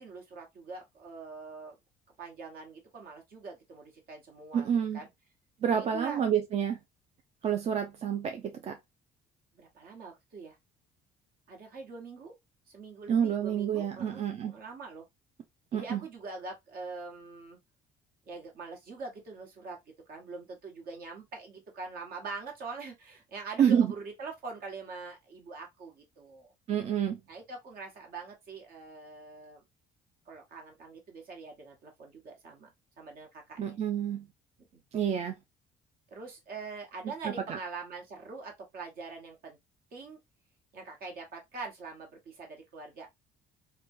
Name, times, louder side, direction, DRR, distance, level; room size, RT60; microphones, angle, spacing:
voice 1, 0.0-1.7 2.2-4.7 4.9-5.1 5.7-6.2 9.5-10.6 11.5-12.3 12.7-15.1 15.7-17.6 18.3-19.8 20.1-26.5 27.3-29.6 30.2-32.7 33.0-33.8 34.6-34.8 36.1-39.6 39.9-40.2 40.7-43.1, right 4 dB, 60° right, 1.3 m, -44 dB
voice 2, 4.5-5.0 5.6-6.8 7.4-8.8 13.1-14.6 15.7-16.0 23.6-23.9 26.7-27.2 33.6-34.3 34.9-35.3 37.2-37.6, right 8 dB, 40° right, 0.4 m, -28 dB
3.1 x 2.2 x 2.6 m
cardioid pair, 110°, 17 cm